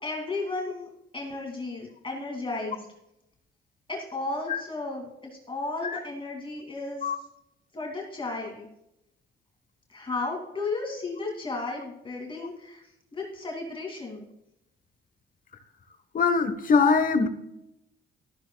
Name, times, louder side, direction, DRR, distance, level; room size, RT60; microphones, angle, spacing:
voice 1, 0.0-2.9 3.9-5.1 5.5-7.1 7.7-8.7 9.9-12.8 13.1-14.3, left 3 dB, 25° left, 0 dB, 2.6 m, -34 dB
voice 2, 16.1-17.3, left 5 dB, 45° left, 9 dB, 1.2 m, -22 dB
13.5 x 12.5 x 2.3 m, 0.83 s
cardioid pair, 90°, 20 cm